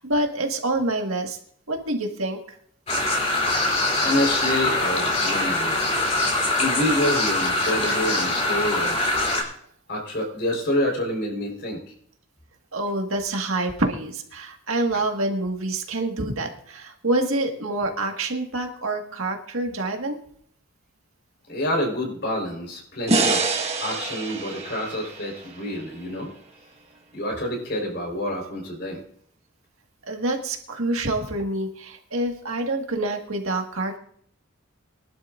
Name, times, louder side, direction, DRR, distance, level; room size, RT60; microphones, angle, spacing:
voice 1, 0.0-1.4 1.7-2.4 12.7-20.2 30.1-34.0, right 2 dB, 80° right, 3 dB, 1.8 m, -27 dB
sound 1, 2.9-9.4, left 2 dB, 30° left, 3.2 m, -23 dB
voice 2, 4.0-5.9 6.6-9.1 9.9-11.8 21.5-23.5 23.8-26.3 27.1-29.0, left 1 dB, 50° left, 0 dB, 4.3 m, -27 dB
sound 2, 23.1-26.3, right 3 dB, 30° right, 1.5 m, -26 dB
23.0 x 11.5 x 2.6 m, 0.62 s
head